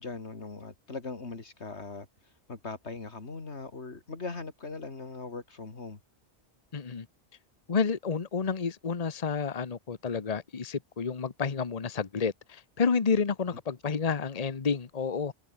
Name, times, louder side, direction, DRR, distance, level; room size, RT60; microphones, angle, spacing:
voice 1, 0.0-6.0 13.5-13.6 15.3-15.4, left 3 dB, 80° left, 2.8 m, -40 dB
voice 2, 6.7-7.1 7.7-15.3, left 5 dB, 35° left, 1.1 m, -30 dB
omnidirectional pair, 1.1 m